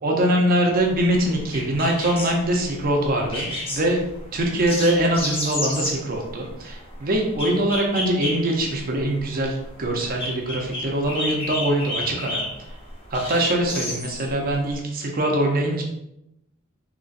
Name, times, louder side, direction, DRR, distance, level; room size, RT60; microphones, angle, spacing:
voice 1, 0.0-4.0 4.3-12.5 13.1-15.8, right 1 dB, 45° right, 1 dB, 0.6 m, -23 dB
sound 1, 0.8-14.8, left 1 dB, 25° left, 0.9 m, -33 dB
3.9 x 3.0 x 2.5 m, 0.84 s
head